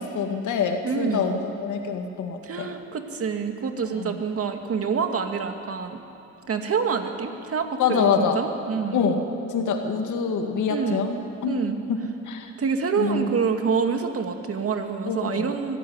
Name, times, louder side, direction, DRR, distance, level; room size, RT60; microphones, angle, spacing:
voice 1, 0.0-2.7 3.9-4.2 7.8-8.4 8.9-9.2 9.5-11.6 11.9-12.0 12.3-12.5 13.0-13.3 15.0-15.5, left 5 dB, 80° left, 4 dB, 2.3 m, -25 dB
voice 2, 0.8-1.3 2.4-6.0 6.5-9.0 10.7-11.0 11.5-11.8 12.6-15.8, right 5 dB, 50° right, 5 dB, 2.2 m, -27 dB
24.0 x 14.5 x 9.7 m, 2.8 s
cardioid pair, 90°, 30 cm